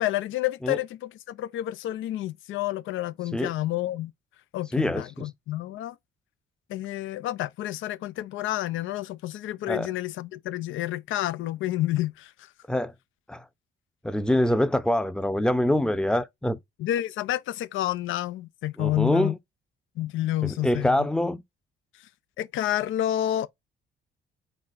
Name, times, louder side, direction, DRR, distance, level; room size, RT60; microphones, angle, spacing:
voice 1, 0.0-4.1 4.5-6.0 6.7-12.5 16.8-19.3 20.0-21.1 21.9-22.1 22.4-23.5, left 14 dB, 80° left, 0.5 m, -29 dB
voice 2, 4.7-5.0 9.7-9.9 12.7-12.9 13.3-13.4 14.0-16.6 18.8-19.3 20.4-21.4, left 1 dB, 5° left, 0.6 m, -24 dB
4.2 x 4.2 x 2.5 m
cardioid pair, 90°, 20 cm